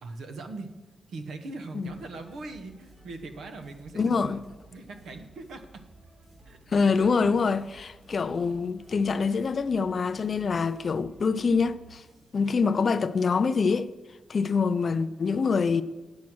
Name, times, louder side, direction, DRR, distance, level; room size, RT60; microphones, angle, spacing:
voice 1, 0.0-0.7 1.1-4.4 4.7-5.8 6.4-6.6, right 3 dB, 85° right, 1.1 m, -40 dB
sound 1, 1.8-12.4, right 3 dB, 45° right, 3.6 m, -55 dB
voice 2, 4.0-4.4 6.7-12.0 12.3-13.9 14.3-15.8, left 5 dB, 45° left, 0.3 m, -25 dB
10.5 x 7.4 x 6.1 m
wide cardioid pair, 140°, 0 cm